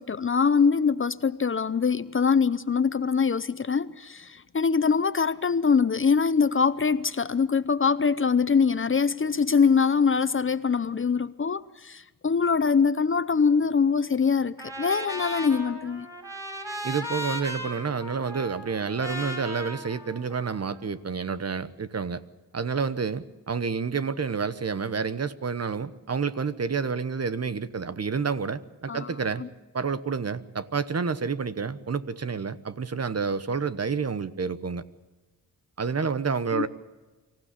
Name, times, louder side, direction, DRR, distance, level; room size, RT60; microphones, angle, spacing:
voice 1, 0.0-16.1 28.9-29.1 29.4-29.5 36.5-36.7, left 5 dB, 35° left, 0.7 m, -23 dB
Trumpet, 14.6-20.8, equal, 10° right, 5.5 m, -37 dB
voice 2, 16.8-22.2 22.5-29.4 29.7-34.8 35.8-36.7, right 5 dB, 45° right, 1.1 m, -29 dB
24.5 x 15.5 x 8.4 m
cardioid pair, 85°, 36 cm